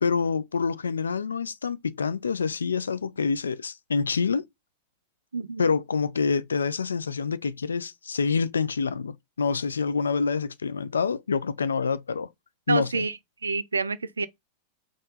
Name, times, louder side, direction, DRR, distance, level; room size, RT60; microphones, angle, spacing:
voice 1, 0.0-4.4 5.6-12.3 12.7-13.0, left 5 dB, 70° left, 0.4 m, -27 dB
voice 2, 5.3-5.7 12.7-14.3, right 4 dB, 75° right, 0.4 m, -28 dB
4.2 x 3.0 x 3.9 m
figure-of-eight pair, 90°, 0 cm